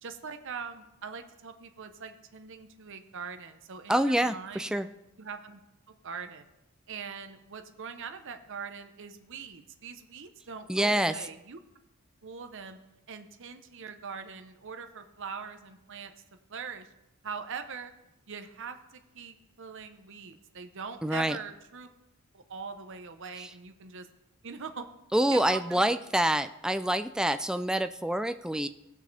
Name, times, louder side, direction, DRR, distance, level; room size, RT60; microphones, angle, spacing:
voice 1, 0.0-4.7 5.2-5.6 5.9-6.5 6.9-11.6 12.2-12.8 13.1-16.1 16.5-16.9 17.2-17.9 18.3-21.9 22.3-24.1 24.4-24.9 25.3-26.0, right 5 dB, 60° right, 9 dB, 0.8 m, -42 dB
voice 2, 3.9-4.9 10.7-11.1 21.0-21.4 23.4-23.5 25.1-28.7, right 1 dB, 5° right, 10 dB, 0.3 m, -27 dB
18.5 x 6.3 x 3.3 m, 0.93 s
head